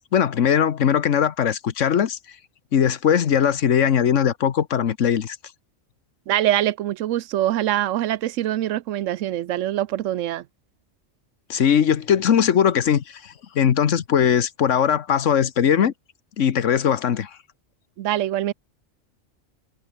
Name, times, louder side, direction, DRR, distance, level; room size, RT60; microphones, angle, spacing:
voice 1, 0.0-2.2 2.7-5.4 11.5-15.9 16.4-17.3, left 8 dB, 80° left, 1.4 m, -20 dB
voice 2, 6.3-10.4 18.0-18.5, right 13 dB, 85° right, 1.0 m, -24 dB
omnidirectional pair, 1.3 m